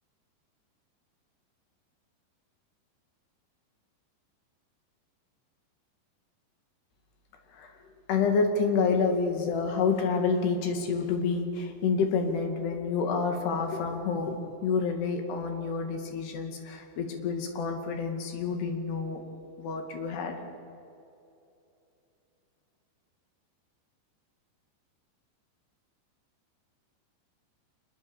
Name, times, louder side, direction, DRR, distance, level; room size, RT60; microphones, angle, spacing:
voice 1, 8.1-19.2 19.6-20.3, left 5 dB, 65° left, 4 dB, 4.0 m, -28 dB
25.0 x 21.0 x 7.1 m, 2.8 s
omnidirectional pair, 5.3 m